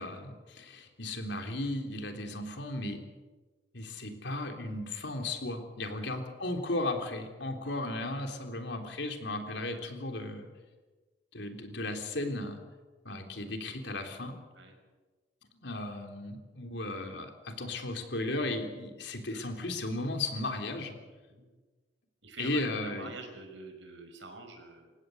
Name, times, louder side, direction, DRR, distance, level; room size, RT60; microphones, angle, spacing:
voice 1, 0.0-3.0 3.7-10.5 11.3-12.6 13.1-14.4 15.5-21.0 22.4-23.1, left 2 dB, 70° left, 4 dB, 3.6 m, -35 dB
voice 2, 22.2-24.9, right 2 dB, 85° right, 5 dB, 5.9 m, -47 dB
29.0 x 16.0 x 8.0 m, 1.3 s
head